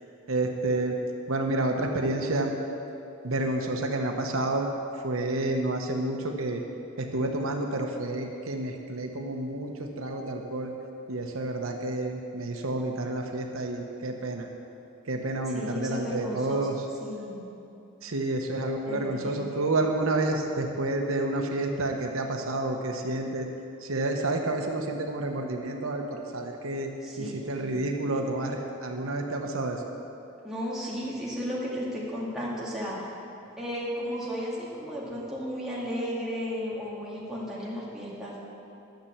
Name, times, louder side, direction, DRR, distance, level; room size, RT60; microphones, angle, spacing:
voice 1, 0.3-1.0 1.3-2.5 3.2-4.7 4.9-6.6 7.0-10.7 11.1-14.5 15.1-16.8 18.0-23.5 23.8-26.9 27.2-29.8, right 2 dB, 80° right, 3 dB, 1.0 m, -29 dB
voice 2, 15.5-16.7 17.0-17.4 18.9-19.6 27.0-27.9 30.4-33.0 33.6-38.4, equal, ahead, -7 dB, 2.0 m, -34 dB
12.0 x 6.8 x 7.2 m, 2.8 s
head